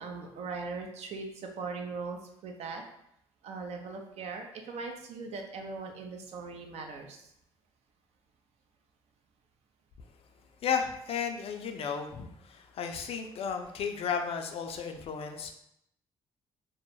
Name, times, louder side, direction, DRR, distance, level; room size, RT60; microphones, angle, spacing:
voice 1, 0.0-2.8 3.4-7.3, right 4 dB, 65° right, 3 dB, 0.5 m, -40 dB
voice 2, 10.6-15.5, left 6 dB, 55° left, 5 dB, 0.4 m, -34 dB
2.2 x 2.0 x 3.0 m, 0.74 s
supercardioid pair, 60°, 12 cm